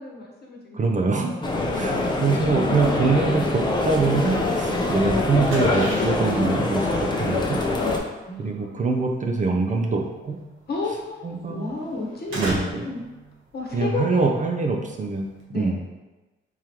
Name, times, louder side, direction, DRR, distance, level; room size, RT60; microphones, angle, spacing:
voice 1, 0.0-1.0 1.3-2.1 4.7-5.0 8.3-8.9 10.7-13.0 13.5-14.3 15.5-15.8, left 3 dB, 50° left, -2 dB, 1.0 m, -33 dB
voice 2, 0.7-1.3 1.7-7.6 8.4-10.4 11.2-11.7 12.4-12.9 13.7-15.8, right 4 dB, 35° right, 2 dB, 0.5 m, -24 dB
sound 1, 1.4-8.0, left 2 dB, 20° left, 0.6 m, -24 dB
sound 2, 5.4-15.4, right 1 dB, 75° right, 1.0 m, -38 dB
3.8 x 3.1 x 2.9 m, 1.1 s
cardioid pair, 80°, 21 cm